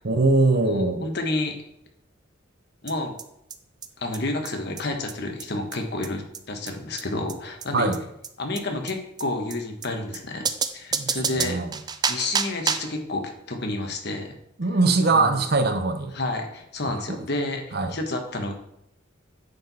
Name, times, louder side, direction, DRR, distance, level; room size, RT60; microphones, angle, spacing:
voice 1, 0.0-1.1 7.7-8.0 10.9-11.7 14.6-16.1 16.9-17.3 17.7-18.0, right 3 dB, 55° right, 7 dB, 0.8 m, -22 dB
voice 2, 0.5-1.6 2.8-3.1 4.0-7.9 8.4-10.5 10.7-11.6 12.1-14.3 15.0-15.4 16.1-18.5, left 2 dB, 55° left, 4 dB, 1.2 m, -30 dB
sound 1, 2.9-3.0 3.2-3.3 3.5-3.6 3.8-3.9 4.1-4.2 4.4-4.5 4.8-4.9 5.1-5.2 5.4-5.5 5.7-5.8 6.0-6.1 6.3-6.4 6.7-6.8 7.0-7.1 7.3-7.4 7.6-7.7 7.9-8.0 8.2-8.3 8.6-8.7 8.9-9.0 9.2-9.3 9.5-9.6 9.8-9.9 10.1-10.2 10.5-13.0, right 6 dB, 20° right, 0.4 m, -28 dB
9.5 x 4.5 x 4.2 m, 0.78 s
head